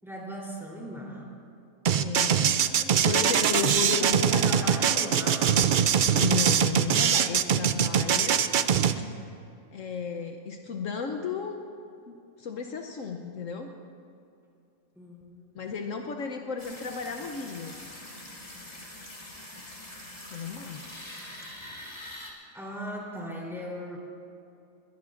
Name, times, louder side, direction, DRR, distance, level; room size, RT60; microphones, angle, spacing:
voice 1, 0.0-1.4 2.3-3.0 3.9-5.6 14.9-15.6 22.5-24.0, equal, ahead, -4 dB, 3.4 m, -38 dB
sound 1, 1.9-8.9, right 8 dB, 85° right, 0.4 m, -22 dB
voice 2, 2.0-2.3 3.1-4.7 6.2-8.5 9.1-9.2 9.7-11.6 12.1-13.7 15.5-17.7 20.0-20.8, left 5 dB, 70° left, 4 dB, 1.1 m, -34 dB
sound 2, 16.6-22.3, left 1 dB, 30° left, 2.2 m, -44 dB
21.5 x 18.0 x 2.5 m, 2.6 s
omnidirectional pair, 1.5 m